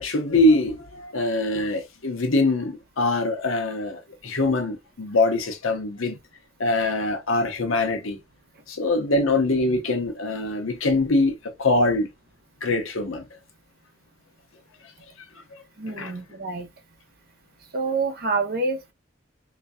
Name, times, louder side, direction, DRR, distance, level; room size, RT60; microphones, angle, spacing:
voice 1, 0.0-6.2 6.6-8.2 8.7-12.1 12.6-13.2 15.9-16.1, left 2 dB, 85° left, 0.9 m, -23 dB
voice 2, 15.8-16.7 17.7-18.9, right 3 dB, 50° right, 0.9 m, -27 dB
3.5 x 3.0 x 2.7 m
head